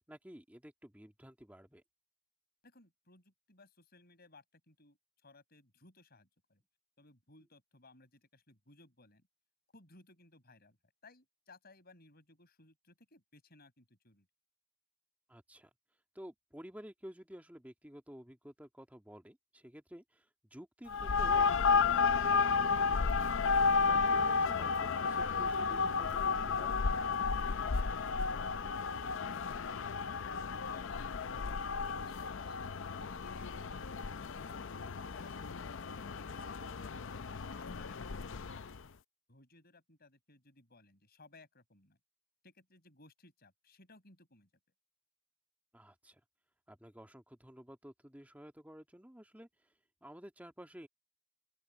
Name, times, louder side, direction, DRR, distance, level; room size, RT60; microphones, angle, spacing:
voice 1, 0.0-1.8 15.3-15.7 16.2-23.2 23.7-26.8 34.6-35.0 45.7-46.2 46.7-49.5 50.0-50.9, equal, 5° right, 1.8 m, -52 dB
voice 2, 2.6-5.0 5.2-6.6 7.0-9.2 9.7-10.8 11.0-14.3 27.6-33.7 34.5-37.2 37.6-38.4 39.3-42.0 42.4-44.5, left 2 dB, 45° left, 6.8 m, -61 dB
sound 1, 20.9-38.8, left 5 dB, 60° left, 0.6 m, -32 dB
open air
head